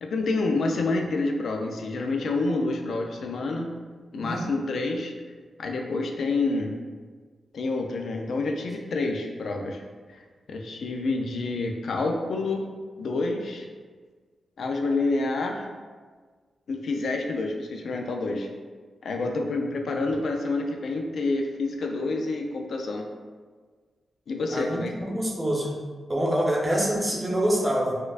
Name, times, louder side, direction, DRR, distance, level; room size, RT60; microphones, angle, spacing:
voice 1, 0.0-3.7 4.1-5.1 5.6-6.8 7.5-9.8 10.1-10.2 10.5-12.7 13.0-13.7 14.6-15.7 16.7-18.5 19.0-23.1 24.3-24.9, left 3 dB, 75° left, 2 dB, 0.4 m, -28 dB
voice 2, 4.1-4.5 24.5-25.8 26.1-28.0, right 1 dB, 25° right, -2 dB, 0.8 m, -26 dB
4.3 x 2.3 x 2.4 m, 1.5 s
cardioid pair, 50°, 0 cm